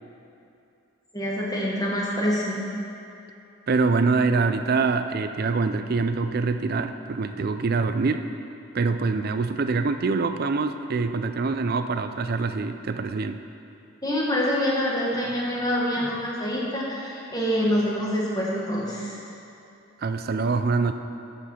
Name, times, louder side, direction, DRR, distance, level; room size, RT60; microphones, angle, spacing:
voice 1, 1.1-2.7 14.0-19.2, equal, 20° left, -4 dB, 1.6 m, -26 dB
voice 2, 3.7-8.3 8.7-13.4 20.0-20.9, right 4 dB, 45° right, 9 dB, 0.4 m, -24 dB
13.0 x 5.3 x 5.6 m, 2.7 s
head